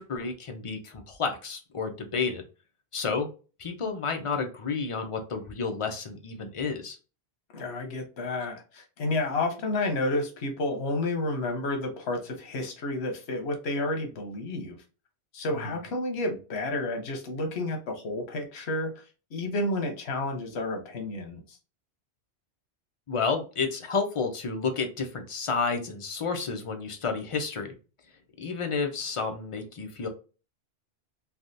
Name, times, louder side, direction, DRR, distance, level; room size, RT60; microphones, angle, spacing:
voice 1, 0.0-2.4 2.9-3.3 3.6-7.0 15.6-15.7 23.1-27.8 28.4-30.1, left 5 dB, 40° left, 5 dB, 0.5 m, -31 dB
voice 2, 7.5-14.8 15.3-19.0 19.3-21.6, left 2 dB, 85° left, 4 dB, 1.1 m, -31 dB
3.4 x 2.3 x 2.6 m, 0.34 s
omnidirectional pair, 1.1 m